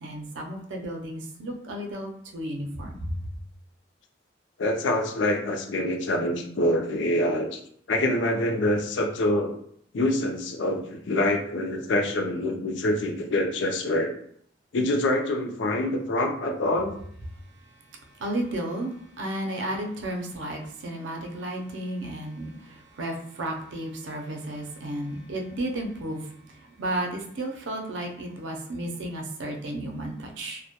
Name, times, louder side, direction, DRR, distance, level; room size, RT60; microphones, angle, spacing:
voice 1, 0.0-3.1 18.2-22.5 23.0-26.2 26.8-30.6, right 1 dB, 75° right, 2 dB, 0.5 m, -33 dB
voice 2, 4.6-7.6 7.9-9.5 9.9-14.1 14.7-16.9, left 1 dB, 75° left, 3 dB, 0.4 m, -25 dB
2.1 x 2.1 x 2.8 m, 0.65 s
head